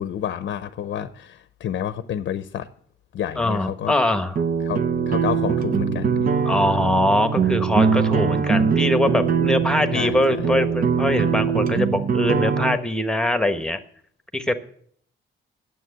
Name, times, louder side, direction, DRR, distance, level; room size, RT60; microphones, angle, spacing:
voice 1, 0.0-2.7 3.1-3.9 4.6-6.3 9.9-10.5, left 10 dB, 65° left, 12 dB, 0.7 m, -30 dB
voice 2, 3.4-4.4 6.4-13.8 14.3-14.5, left 1 dB, 5° left, 8 dB, 1.2 m, -22 dB
sound 1, 4.4-12.8, right 6 dB, 45° right, 0.8 m, -22 dB
9.3 x 7.7 x 7.9 m, 0.63 s
cardioid pair, 90°, 20 cm